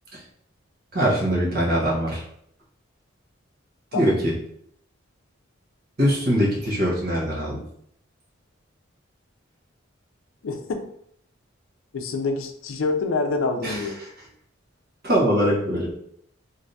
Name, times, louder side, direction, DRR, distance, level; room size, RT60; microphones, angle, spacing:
voice 1, 0.9-2.2 3.9-4.3 6.0-7.6 13.6-13.8 15.0-15.9, equal, 50° right, -4 dB, 1.0 m, -22 dB
voice 2, 10.4-10.9 11.9-14.0, left 3 dB, 75° left, 5 dB, 0.4 m, -26 dB
3.3 x 2.6 x 2.7 m, 0.69 s
head